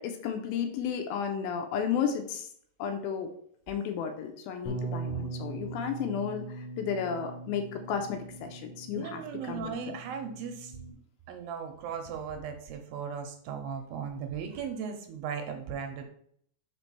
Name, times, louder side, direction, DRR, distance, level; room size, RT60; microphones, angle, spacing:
voice 1, 0.0-2.5 2.8-3.3 3.7-10.0, left 7 dB, 80° left, 6 dB, 2.3 m, -33 dB
Bass guitar, 4.6-10.9, right 3 dB, 50° left, 1.7 m, -40 dB
voice 2, 8.9-10.8 11.3-16.1, right 7 dB, 80° right, 5 dB, 2.3 m, -37 dB
5.2 x 4.4 x 5.6 m, 0.64 s
omnidirectional pair, 4.5 m